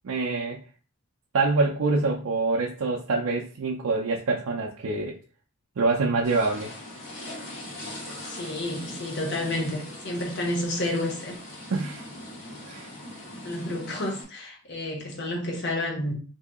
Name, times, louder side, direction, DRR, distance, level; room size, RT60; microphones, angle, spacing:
voice 1, 0.0-0.6 1.3-5.2 5.8-6.7 11.7-12.0 12.7-12.9, right 3 dB, 80° right, 0.5 m, -25 dB
sound 1, 6.2-14.2, left 1 dB, 70° left, 1.4 m, -40 dB
voice 2, 8.2-11.4 13.4-16.1, left 1 dB, 55° left, 0.9 m, -30 dB
2.8 x 2.7 x 3.5 m
head